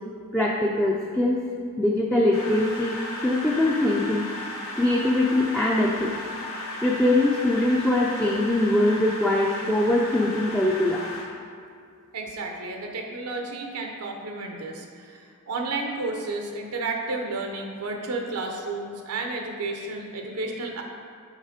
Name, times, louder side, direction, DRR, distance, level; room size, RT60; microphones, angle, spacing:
voice 1, 0.3-1.4 1.8-4.3 4.8-6.1 6.8-11.1, left 1 dB, 5° left, -3 dB, 0.4 m, -22 dB
sound 1, 2.3-11.2, left 2 dB, 70° left, 1.7 m, -35 dB
voice 2, 12.1-20.8, right 3 dB, 85° right, 2 dB, 0.8 m, -32 dB
6.5 x 4.2 x 5.0 m, 2.3 s
head